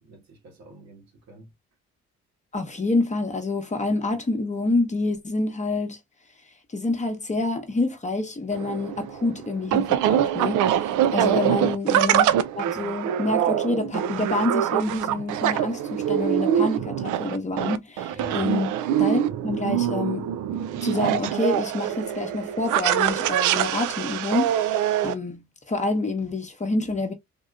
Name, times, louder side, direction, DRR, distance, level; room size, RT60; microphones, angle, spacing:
voice 1, 0.0-1.5 11.1-11.8 18.1-18.4, right 2 dB, 65° right, 1.6 m, -42 dB
voice 2, 2.5-6.0 6.7-10.8 11.1-12.3 12.5-18.7 19.0-20.3 20.8-27.1, left 2 dB, 25° left, 0.9 m, -27 dB
sound 1, 8.5-25.1, right 10 dB, 80° right, 0.5 m, -24 dB
3.6 x 2.7 x 2.3 m
cardioid pair, 90°, 30 cm